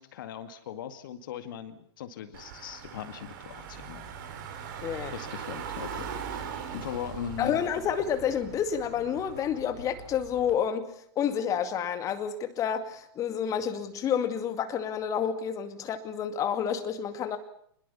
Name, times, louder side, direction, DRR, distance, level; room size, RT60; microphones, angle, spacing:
voice 1, 0.0-4.0 5.1-6.5 6.7-7.6, left 9 dB, 50° left, 9 dB, 2.1 m, -39 dB
Car / Engine, 2.3-10.5, right 7 dB, 50° right, 4.9 m, -41 dB
voice 2, 4.8-5.1 7.4-17.4, left 8 dB, 25° left, 8 dB, 2.3 m, -29 dB
27.0 x 21.0 x 7.1 m, 0.68 s
figure-of-eight pair, 105°, 14 cm